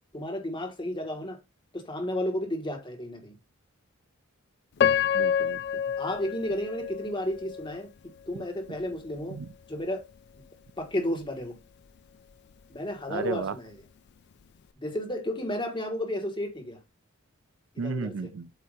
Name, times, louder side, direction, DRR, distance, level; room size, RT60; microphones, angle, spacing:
voice 1, 0.1-1.4 1.7-3.3 6.0-7.9 8.3-9.4 9.7-10.1 10.8-11.6 12.7-13.7 14.8-16.8 17.8-18.1, left 1 dB, 20° left, 1.5 m, -32 dB
Piano, 4.8-7.8 8.4-8.5 9.1-9.4, left 8 dB, 50° left, 0.3 m, -27 dB
voice 2, 5.1-5.8 8.3-8.4 9.3-9.5 13.1-13.6 17.8-18.5, right 4 dB, 60° right, 0.4 m, -34 dB
7.8 x 2.8 x 4.9 m
head